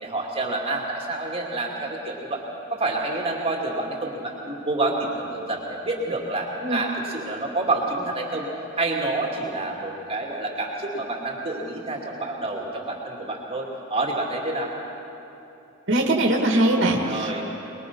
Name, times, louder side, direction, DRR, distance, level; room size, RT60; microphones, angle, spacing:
voice 1, 0.0-2.4 2.7-8.5 8.8-14.7 17.0-17.4, right 2 dB, 30° right, -1 dB, 2.4 m, -28 dB
voice 2, 15.9-17.4, right 1 dB, 60° right, 0 dB, 2.1 m, -21 dB
24.0 x 21.5 x 5.5 m, 3.0 s
head